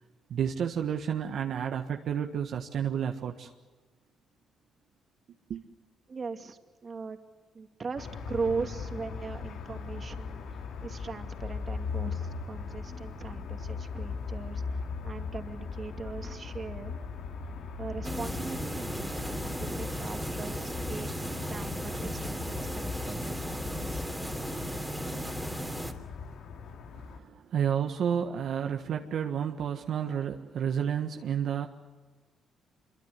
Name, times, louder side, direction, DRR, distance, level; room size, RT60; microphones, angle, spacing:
voice 1, 0.3-3.5 5.5-5.6 26.9-31.7, right 8 dB, 70° right, 4 dB, 1.5 m, -31 dB
voice 2, 6.1-7.2 7.5-10.4 10.8-14.6 15.0-17.0 17.8-24.0, right 4 dB, 40° right, 6 dB, 2.4 m, -39 dB
sound 1, 8.0-27.2, left 5 dB, 75° left, 2.6 m, -39 dB
sound 2, 12.8-26.0, equal, 20° left, 2.9 m, -50 dB
sound 3, 18.0-25.9, right 1 dB, 5° right, 3.0 m, -36 dB
26.0 x 23.5 x 8.2 m, 1.3 s
cardioid pair, 90°, 0 cm